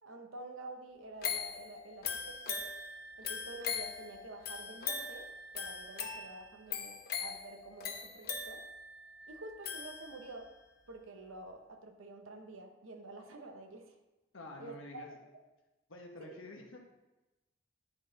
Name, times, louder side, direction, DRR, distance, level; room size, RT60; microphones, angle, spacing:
voice 1, 0.0-2.7 3.2-5.3 5.5-8.6 9.3-10.5 10.9-14.0 14.6-14.8 15.3-15.4 16.2-16.4, right 2 dB, 80° right, 4 dB, 1.0 m, -49 dB
sound 1, 1.2-10.5 10.9-11.0, left 6 dB, 50° left, 0.8 m, -41 dB
voice 2, 14.3-15.2 15.9-16.8, left 2 dB, 75° left, 1 dB, 1.3 m, -49 dB
10.0 x 4.1 x 4.0 m, 1.0 s
head